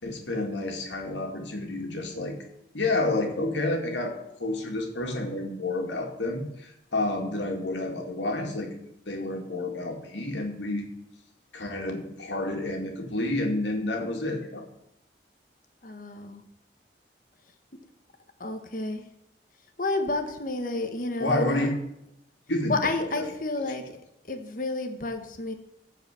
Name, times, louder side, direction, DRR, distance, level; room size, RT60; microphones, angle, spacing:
voice 1, 0.0-2.4 2.7-8.7 9.1-10.9 11.5-14.7 21.2-21.7 22.5-22.8 23.2-23.3, left 2 dB, 85° left, 2 dB, 2.2 m, -29 dB
voice 2, 15.8-16.4 18.4-19.1 19.8-21.7 22.7-24.0 24.3-25.5, left 2 dB, 45° left, 6 dB, 1.2 m, -30 dB
14.5 x 4.9 x 6.8 m, 0.81 s
head